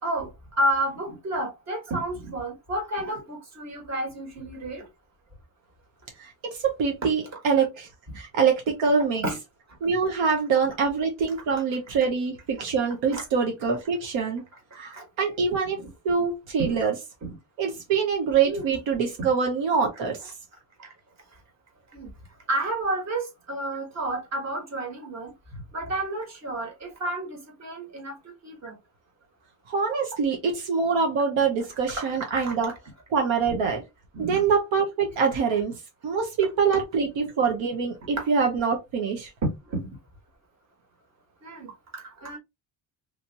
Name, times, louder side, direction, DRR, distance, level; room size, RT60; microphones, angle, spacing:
voice 1, 0.0-4.9 7.0-7.4 9.2-9.4 13.1-13.2 14.9-15.0 15.7-15.9 16.6-16.8 17.2-17.4 18.4-18.7 20.8-20.9 21.9-22.1 22.5-28.8 31.9-32.6 33.5-33.7 34.1-34.4 38.2-38.3 39.4-39.8 41.4-42.4, right 1 dB, 35° right, 1.6 m, -31 dB
voice 2, 6.2-7.9 8.1-9.2 9.8-14.4 14.8-15.8 16.0-16.9 17.6-20.3 29.7-32.7 33.1-33.8 34.2-39.3, right 5 dB, 75° right, 1.0 m, -25 dB
3.3 x 2.8 x 2.8 m
cardioid pair, 125°, 46 cm